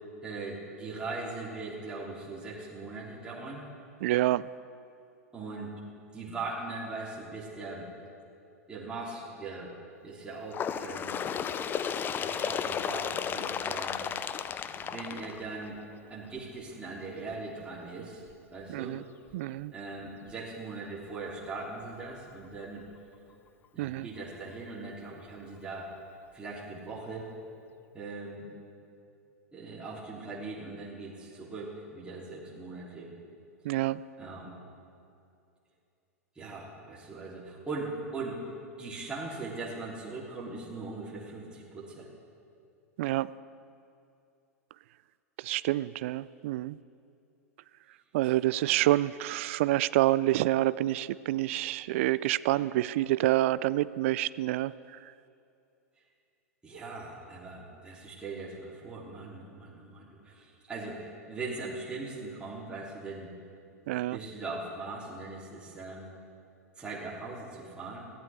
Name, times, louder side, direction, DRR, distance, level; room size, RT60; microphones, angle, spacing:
voice 1, 0.2-3.7 5.3-5.7 6.1-7.9 8.7-9.8 10.0-11.2 12.1-14.1 14.6-15.8 16.1-18.2 18.5-19.0 19.7-22.9 23.7-25.9 26.3-27.3 27.9-28.5 29.5-33.1 34.2-34.6 36.4-38.5 38.8-42.1 48.2-48.3 56.6-63.3 64.1-66.1 66.8-68.0, right 3 dB, 10° right, -6 dB, 3.4 m, -40 dB
voice 2, 4.0-4.4 18.7-19.0 19.3-19.7 23.8-24.1 33.6-34.0 43.0-43.3 45.4-46.8 48.1-55.0 63.9-64.2, right 16 dB, 55° right, 18 dB, 0.3 m, -27 dB
Bird, 10.5-15.9 16.8-16.9 17.3-17.4 18.3-18.4 19.3-19.4 20.3-20.4, left 8 dB, 25° left, 0.6 m, -33 dB
22.0 x 15.5 x 3.6 m, 2.5 s
figure-of-eight pair, 95°, 8 cm